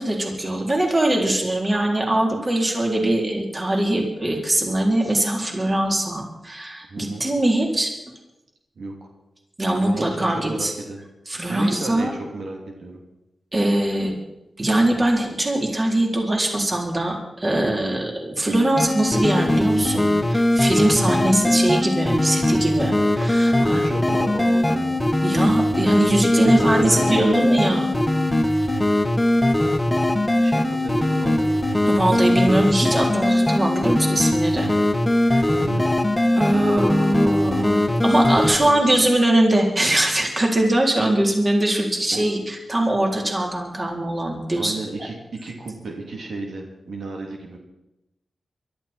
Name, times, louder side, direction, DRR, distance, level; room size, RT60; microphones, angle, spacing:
voice 1, 0.0-7.9 9.6-10.7 11.3-12.1 13.5-14.1 14.6-23.8 25.2-27.9 31.9-34.7 35.3-35.5 36.4-44.7, right 1 dB, 30° right, 0 dB, 3.7 m, -21 dB
voice 2, 6.9-7.3 8.8-8.9 9.8-11.0 11.5-13.0 20.9-21.3 23.4-25.0 26.4-27.5 30.3-32.4 35.6-36.0 36.5-36.7 38.4-39.1 41.0-41.1 42.1-42.3 44.6-45.1 45.4-47.6, right 2 dB, 80° right, 0 dB, 3.1 m, -33 dB
sound 1, 18.8-38.6, left 1 dB, 15° left, 1.6 m, -20 dB
23.5 x 12.5 x 4.4 m, 0.93 s
wide cardioid pair, 85°, 0 cm